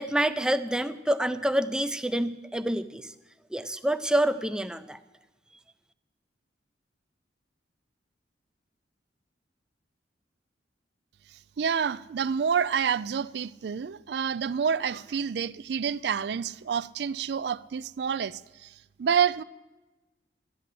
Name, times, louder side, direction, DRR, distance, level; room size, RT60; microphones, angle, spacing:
voice 1, 0.0-3.1 3.5-5.0, right 1 dB, 5° right, 0.5 m, -27 dB
voice 2, 11.6-18.7 19.0-19.4, right 7 dB, 60° right, 0.4 m, -28 dB
12.5 x 10.5 x 7.5 m
head